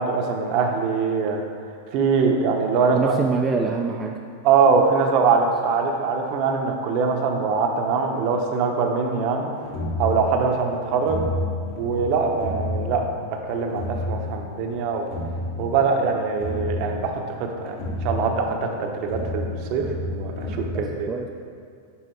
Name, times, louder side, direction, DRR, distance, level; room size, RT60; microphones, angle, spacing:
voice 1, 0.0-1.4 1.9-3.2 4.4-9.5 10.0-11.2 11.8-13.1 13.5-15.1 15.6-21.1, right 5 dB, 45° right, 3 dB, 0.7 m, -23 dB
voice 2, 2.9-4.2 20.7-21.3, right 4 dB, 15° right, 1 dB, 0.3 m, -25 dB
sound 1, 9.6-20.7, left 1 dB, 40° left, 1.0 m, -31 dB
7.1 x 3.6 x 4.5 m, 2.2 s
supercardioid pair, 140°, 0 cm